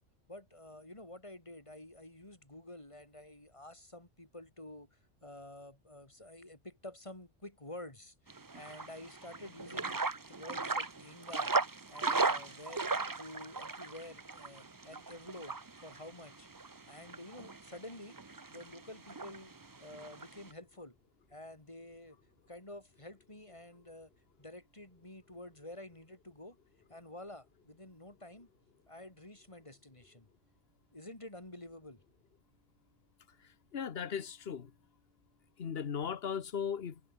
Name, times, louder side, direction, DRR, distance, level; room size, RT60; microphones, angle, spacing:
voice 1, 0.3-11.5 11.9-12.9 13.2-15.5 15.8-16.5 16.9-18.2 18.5-19.5 19.8-21.0 21.3-22.2 22.5-24.1 24.4-26.6 26.9-28.5 28.9-30.3 30.9-32.0, left 1 dB, 25° left, 3.7 m, -50 dB
sound 1, 8.3-20.5, right 3 dB, 20° right, 0.6 m, -38 dB
voice 2, 33.7-34.7 35.6-37.0, left 7 dB, 55° left, 1.3 m, -37 dB
omnidirectional pair, 1.3 m